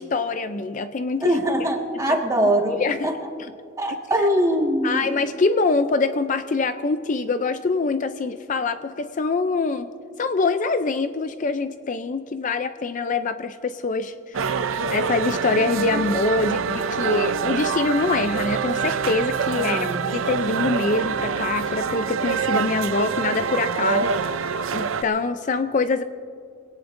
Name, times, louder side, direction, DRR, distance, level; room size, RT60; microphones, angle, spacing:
voice 1, 0.0-1.4 2.1-2.2 2.7-3.1 3.9-4.0 4.8-9.9 10.2-24.1 24.4-26.0, left 3 dB, 40° left, 10 dB, 0.4 m, -24 dB
voice 2, 1.2-3.1 3.8-5.0 19.6-20.1, right 1 dB, 15° right, 1 dB, 1.7 m, -22 dB
sound 1, 14.3-25.0, right 6 dB, 90° right, 0.6 m, -25 dB
24.0 x 17.5 x 2.6 m, 2.3 s
head